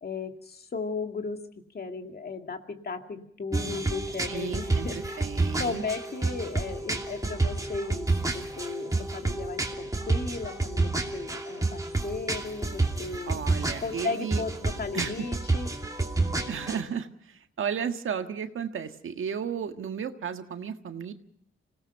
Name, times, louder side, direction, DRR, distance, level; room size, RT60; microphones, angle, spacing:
voice 1, 0.0-1.4 1.7-13.4 13.8-15.7, left 4 dB, 50° left, 5 dB, 2.2 m, -36 dB
sound 1, 3.5-16.8, right 2 dB, 15° right, 2.8 m, -30 dB
voice 2, 4.3-5.8 13.3-14.4 14.9-15.3 16.5-21.1, right 7 dB, 75° right, 7 dB, 1.6 m, -34 dB
26.5 x 18.0 x 5.8 m, 0.66 s
cardioid pair, 90°, 21 cm